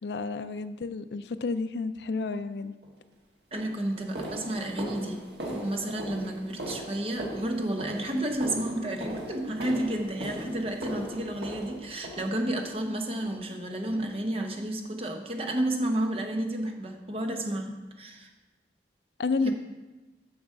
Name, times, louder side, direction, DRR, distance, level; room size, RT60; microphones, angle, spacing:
voice 1, 0.0-2.7 19.2-19.5, left 4 dB, 70° left, 12 dB, 0.4 m, -31 dB
sound 1, 2.8-3.0 3.5-12.7 13.2-13.6 13.8-14.1 14.4-14.6 15.1-15.2 15.7-15.8, right 1 dB, 70° right, 1.6 m, -39 dB
voice 2, 3.5-5.2 5.5-18.3 19.4-19.5, right 1 dB, 35° right, 3 dB, 1.0 m, -31 dB
7.2 x 6.0 x 6.5 m, 1.1 s
head